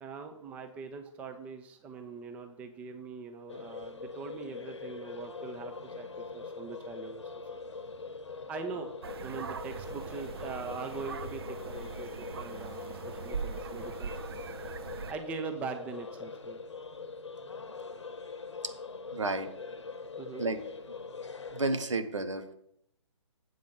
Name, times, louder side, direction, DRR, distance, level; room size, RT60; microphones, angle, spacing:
voice 1, 0.0-7.2 8.5-14.1 14.4-14.5 15.1-16.6 20.2-20.5, right 5 dB, 10° right, 6 dB, 0.5 m, -42 dB
sound 1, 3.5-21.7, left 4 dB, 65° left, 0.9 m, -43 dB
sound 2, 9.0-15.1, right 5 dB, 50° right, 0.7 m, -41 dB
voice 2, 19.1-19.5 20.4-20.6 21.5-22.5, right 2 dB, 70° right, 9 dB, 1.3 m, -31 dB
7.8 x 5.1 x 7.5 m, 0.74 s
figure-of-eight pair, 135°, 16 cm